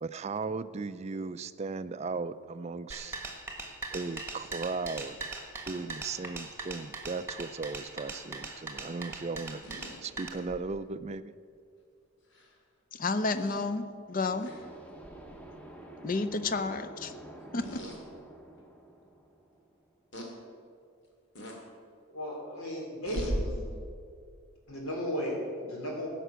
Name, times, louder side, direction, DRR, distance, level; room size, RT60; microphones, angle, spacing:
voice 1, 0.0-3.2 3.9-5.2 5.7-9.6 10.0-11.3, right 4 dB, 30° right, 14 dB, 0.3 m, -36 dB
sound 1, 2.9-10.3, right 3 dB, 10° right, 1.2 m, -40 dB
sound 2, 9.6-10.7 12.3-12.5 13.3-13.6 14.4-14.6 15.0-15.2 17.6-18.0 18.6-18.7 20.1-20.3 21.4-21.6 23.1-23.4, right 1 dB, 55° left, 2.2 m, -38 dB
voice 2, 12.9-14.5 16.0-17.1 17.5-17.8, left 3 dB, 40° left, 11 dB, 0.6 m, -31 dB
sound 3, 14.3-19.9, right 1 dB, 5° left, 0.9 m, -48 dB
voice 3, 22.1-23.7 24.7-26.1, equal, 80° left, -2 dB, 3.7 m, -35 dB
15.5 x 6.0 x 8.1 m, 2.3 s
head